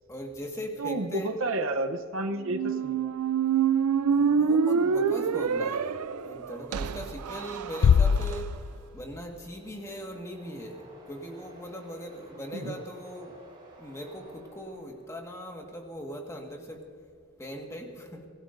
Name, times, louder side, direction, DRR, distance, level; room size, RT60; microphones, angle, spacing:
voice 1, 0.1-1.3 4.1-8.5 8.9-13.4 13.8-16.9 17.4-18.3, equal, 15° left, 2 dB, 1.7 m, -40 dB
voice 2, 0.8-3.1 12.5-12.8, right 2 dB, 60° right, 6 dB, 0.8 m, -31 dB
Squeak, 2.4-8.4, right 6 dB, 90° right, 0.5 m, -27 dB
Bass drum, 7.8-9.2, left 7 dB, 60° left, 0.3 m, -23 dB
sound 1, 8.5-15.5, right 1 dB, 20° right, 4.5 m, -53 dB
24.5 x 17.0 x 2.6 m, 2.4 s
head